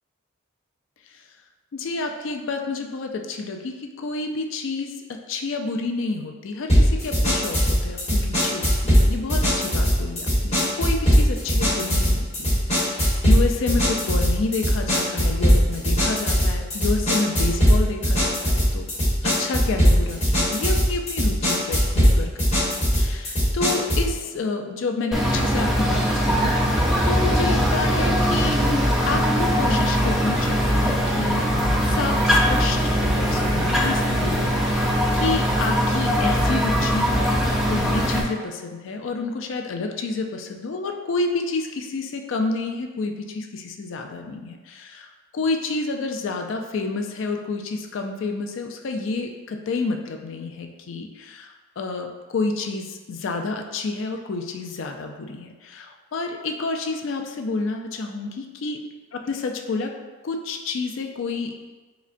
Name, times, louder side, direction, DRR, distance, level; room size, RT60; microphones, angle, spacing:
voice 1, 1.7-18.9 19.2-28.6 29.1-31.5 31.8-58.8 59.1-59.9 60.2-61.5, left 3 dB, 70° left, 4 dB, 0.4 m, -29 dB
sound 1, 6.7-24.1, equal, 30° left, 1.1 m, -20 dB
sound 2, 25.1-38.2, equal, ahead, 0.3 m, -21 dB
4.9 x 2.1 x 2.5 m, 1.2 s
head